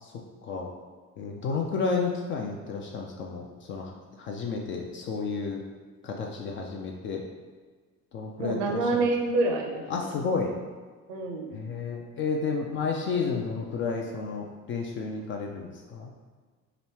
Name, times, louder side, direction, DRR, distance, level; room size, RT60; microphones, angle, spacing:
voice 1, 1.2-5.6 6.0-7.2 8.1-9.1 9.9-10.5 11.5-16.2, left 4 dB, 30° left, 0 dB, 0.4 m, -31 dB
voice 2, 8.4-9.8 11.1-11.6, right 2 dB, 50° right, 2 dB, 0.7 m, -27 dB
3.0 x 2.9 x 4.3 m, 1.5 s
figure-of-eight pair, 55°, 42 cm